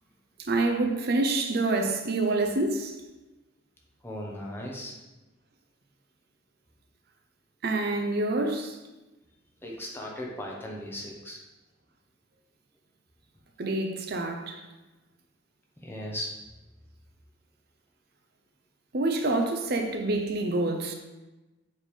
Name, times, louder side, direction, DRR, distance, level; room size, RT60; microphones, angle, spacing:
voice 1, 0.4-2.9 7.6-8.8 13.6-14.6 18.9-20.9, right 2 dB, 50° right, 0.7 m, -27 dB
voice 2, 4.0-4.9 9.6-11.4 15.8-16.3, equal, 10° left, 1.0 m, -37 dB
7.5 x 3.5 x 4.9 m
head